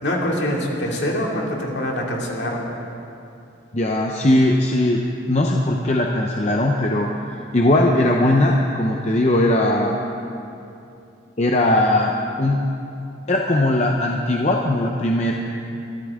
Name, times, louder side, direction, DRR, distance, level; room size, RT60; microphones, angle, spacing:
voice 1, 0.0-2.6, equal, 60° left, -2 dB, 2.5 m, -24 dB
voice 2, 3.7-5.0 5.3-7.1 7.5-10.0 11.4-12.6 13.3-15.3, left 1 dB, 35° left, 0 dB, 0.8 m, -19 dB
23.5 x 13.0 x 3.7 m, 2.7 s
head